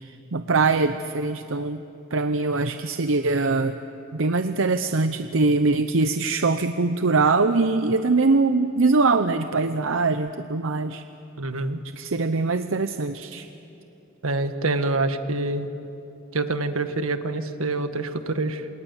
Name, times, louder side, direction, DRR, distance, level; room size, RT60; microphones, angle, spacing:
voice 1, 0.0-1.8 2.1-3.8 4.1-11.0 11.9-13.5, right 3 dB, 65° right, 9 dB, 0.7 m, -22 dB
voice 2, 11.4-11.8 14.2-15.7 16.3-18.7, right 2 dB, 85° right, 8 dB, 1.6 m, -26 dB
28.0 x 27.5 x 7.2 m, 2.8 s
head